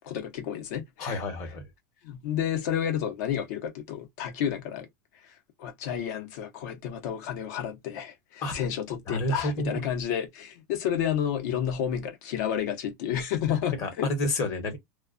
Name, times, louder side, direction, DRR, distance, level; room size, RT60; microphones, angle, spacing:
voice 1, 0.0-1.2 2.0-4.9 5.2-5.3 5.6-14.1, left 9 dB, 65° left, 0.8 m, -31 dB
voice 2, 1.0-1.6 8.4-8.5 9.1-9.8 13.8-14.8, left 1 dB, 35° left, 0.9 m, -29 dB
2.3 x 2.2 x 2.4 m
supercardioid pair, 160°, 10 cm